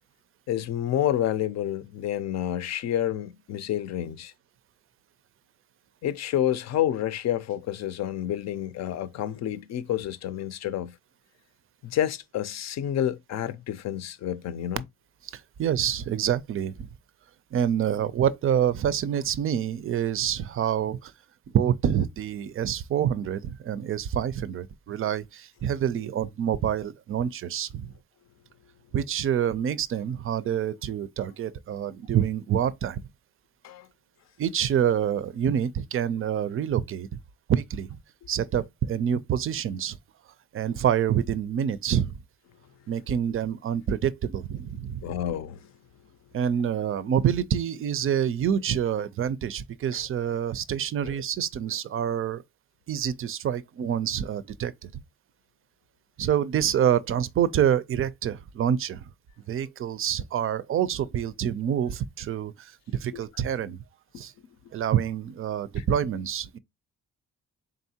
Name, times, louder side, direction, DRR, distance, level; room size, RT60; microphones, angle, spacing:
voice 1, 0.5-4.3 6.0-11.0 11.8-14.8 33.6-33.9 45.0-45.7 51.0-51.1 63.1-63.2 64.1-64.2 65.8-65.9, left 11 dB, 60° left, 0.5 m, -29 dB
voice 2, 15.3-16.9 17.5-21.1 21.5-27.9 28.9-33.0 34.4-37.1 37.5-38.0 38.3-40.0 40.5-42.2 42.9-45.1 46.3-52.4 52.9-54.9 56.2-59.1 59.5-63.8 64.2-64.3 64.7-66.6, right 9 dB, 45° right, 0.4 m, -27 dB
3.8 x 3.6 x 2.7 m
cardioid pair, 90°, 30 cm